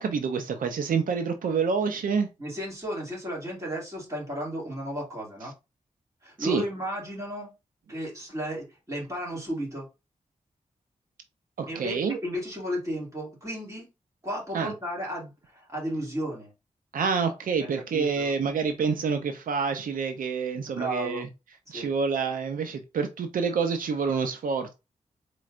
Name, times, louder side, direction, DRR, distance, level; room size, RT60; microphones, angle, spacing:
voice 1, 0.0-2.3 6.4-6.6 11.6-12.2 14.5-14.7 16.9-21.3 21.7-24.7, right 5 dB, 90° right, 0.5 m, -27 dB
voice 2, 2.4-5.5 6.2-7.5 7.9-9.9 11.7-13.9 14.2-16.5 17.6-18.4 20.7-21.3 21.7-21.9, equal, 25° right, 2.4 m, -34 dB
4.2 x 3.1 x 2.4 m
wide cardioid pair, 100°, 14 cm